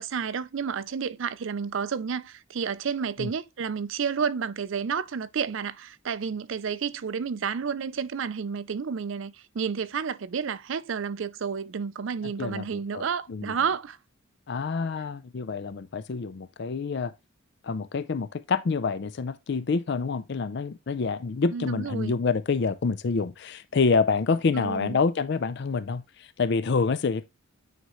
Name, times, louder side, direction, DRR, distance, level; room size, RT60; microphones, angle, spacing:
voice 1, 0.0-14.0 21.5-22.1 24.5-25.0, right 6 dB, 60° right, 0.4 m, -31 dB
voice 2, 12.2-13.5 14.5-17.1 17.6-27.2, left 4 dB, 55° left, 0.4 m, -27 dB
9.2 x 3.7 x 3.0 m
head